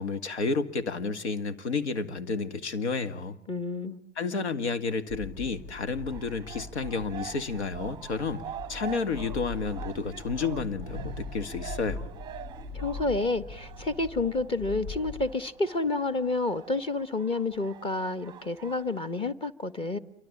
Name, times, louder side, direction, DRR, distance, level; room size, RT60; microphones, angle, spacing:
voice 1, 0.0-3.4 4.2-12.1, left 4 dB, 70° left, 9 dB, 2.2 m, -31 dB
voice 2, 3.5-4.0 12.7-20.0, left 2 dB, 15° left, 14 dB, 1.5 m, -29 dB
sound 1, 5.1-15.3, left 3 dB, 50° left, 7.1 m, -41 dB
sound 2, 6.1-19.0, right 10 dB, 10° right, 1.2 m, -45 dB
28.5 x 23.5 x 8.7 m, 0.74 s
figure-of-eight pair, 110°, 35 cm